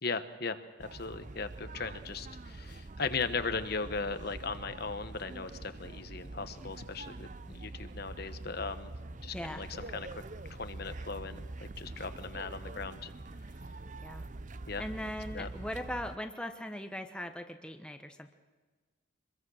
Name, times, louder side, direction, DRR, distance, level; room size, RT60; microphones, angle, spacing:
voice 1, 0.0-8.9 9.2-10.2 10.5-13.1 14.7-14.8 15.3-15.5, left 4 dB, 50° left, 10 dB, 1.2 m, -38 dB
sound 1, 0.8-16.2, right 2 dB, 40° right, 0.6 m, -45 dB
voice 2, 9.3-9.6 14.0-14.2 14.8-18.3, left 1 dB, 5° left, 6 dB, 1.1 m, -39 dB
25.0 x 22.0 x 6.5 m, 1.4 s
head